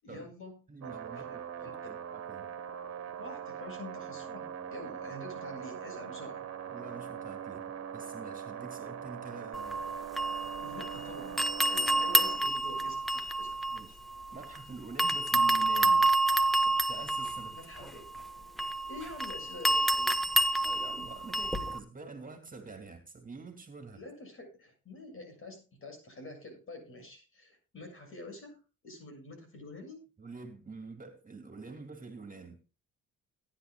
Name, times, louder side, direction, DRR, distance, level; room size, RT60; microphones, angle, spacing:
voice 1, 0.0-2.0 3.1-6.5 10.6-11.4 11.7-13.6 17.5-18.1 18.8-20.3 23.9-30.0, left 2 dB, 45° left, 4 dB, 7.1 m, -47 dB
voice 2, 0.7-2.5 6.7-7.6 7.9-9.8 13.7-14.0 14.3-16.1 16.6-17.6 20.6-24.0 30.2-32.6, right 4 dB, 25° right, 6 dB, 2.8 m, -46 dB
sound 1, 0.8-12.4, right 9 dB, 55° right, 1.9 m, -41 dB
sound 2, 9.5-11.0 11.4-14.6 15.0-21.8, right 1 dB, ahead, 1.2 m, -29 dB
18.0 x 10.5 x 2.4 m, 0.33 s
cardioid pair, 90°, 30 cm